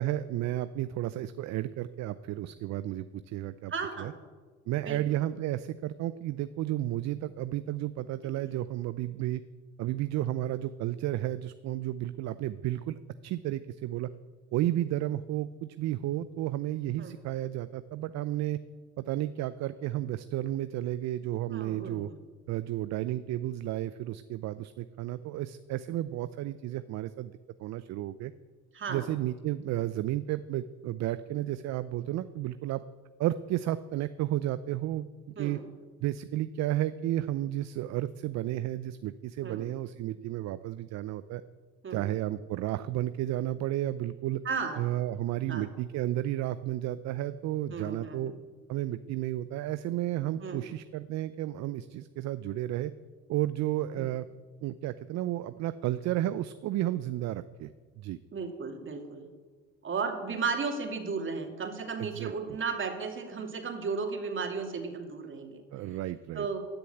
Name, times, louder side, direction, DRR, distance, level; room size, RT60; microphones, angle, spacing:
voice 1, 0.0-3.7 4.0-4.1 4.7-9.4 9.8-14.1 14.5-18.6 19.0-22.1 22.5-27.3 27.6-28.3 28.9-32.8 33.2-35.1 35.4-35.6 36.0-41.4 41.9-44.4 44.8-48.3 48.7-52.9 53.3-54.3 54.6-57.7 58.0-58.2 62.0-62.6 65.7-66.5, right 14 dB, 55° right, 13 dB, 0.6 m, -32 dB
voice 2, 3.7-4.2 4.8-5.0 17.0-17.2 21.5-22.2 28.7-29.0 35.4-35.6 39.4-39.7 41.8-42.1 44.4-44.8 45.5-45.7 47.7-48.4 50.4-50.7 54.0-54.1 58.3-59.3 59.8-65.6 66.3-66.6, right 5 dB, 35° right, 3 dB, 2.7 m, -34 dB
14.0 x 6.9 x 9.2 m, 1.4 s
hypercardioid pair, 75°, 33 cm